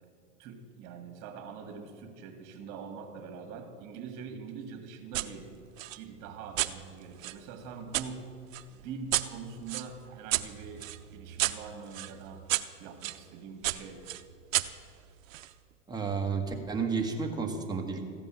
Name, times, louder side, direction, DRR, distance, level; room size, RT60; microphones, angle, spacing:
voice 1, 0.4-5.5 5.9-8.2 8.7-10.8 11.1-12.4 12.8-14.0, right 5 dB, 45° right, 5 dB, 2.0 m, -44 dB
sound 1, 5.1-5.3 5.8-8.1 8.5-13.2 13.6-15.5, right 15 dB, 70° right, 0.7 m, -33 dB
voice 2, 15.9-18.0, right 5 dB, 10° right, 1 dB, 1.4 m, -31 dB
14.5 x 5.3 x 8.8 m, 2.1 s
hypercardioid pair, 120°, 41 cm